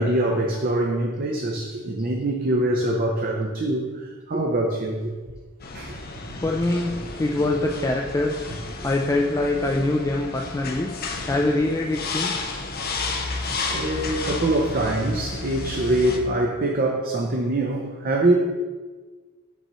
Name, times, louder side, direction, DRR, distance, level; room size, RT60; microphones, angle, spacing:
voice 1, 0.0-3.9 4.3-5.1 5.7-6.0 13.7-18.3, right 1 dB, 45° right, 0 dB, 0.6 m, -24 dB
sound 1, 5.6-16.2, left 3 dB, 50° left, 0.7 m, -32 dB
voice 2, 6.4-8.4 8.8-10.9 11.3-12.5, left 2 dB, 15° left, 1 dB, 0.3 m, -24 dB
5.4 x 4.3 x 6.2 m, 1.4 s
head